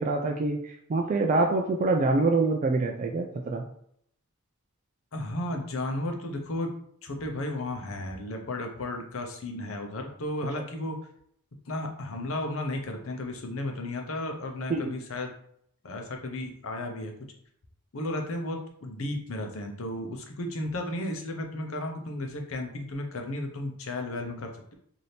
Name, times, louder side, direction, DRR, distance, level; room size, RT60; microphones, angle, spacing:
voice 1, 0.0-3.7 14.7-14.9, right 3 dB, 35° right, 2 dB, 0.3 m, -25 dB
voice 2, 5.1-6.7 7.0-11.0 11.7-15.3 15.8-17.1 17.9-24.7, left 1 dB, 65° left, 4 dB, 0.7 m, -34 dB
4.1 x 2.7 x 3.3 m, 0.67 s
head